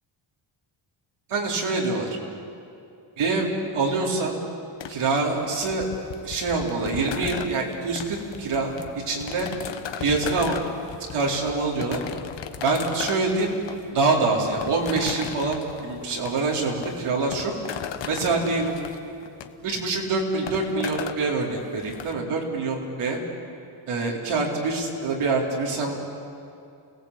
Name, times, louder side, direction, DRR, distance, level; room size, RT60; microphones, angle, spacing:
voice 1, 1.3-2.1 3.2-3.5 3.7-4.4 4.9-5.9 6.2-8.7 9.1-9.5 10.0-10.6 11.1-12.0 12.6-13.6 13.9-17.5 18.1-18.8 19.6-23.2 23.9-25.9, right 3 dB, 85° right, -2 dB, 4.3 m, -25 dB
sound 1, 4.8-22.1, left 9 dB, 60° left, 1.2 m, -37 dB
29.0 x 18.0 x 8.4 m, 2.6 s
wide cardioid pair, 160°, 49 cm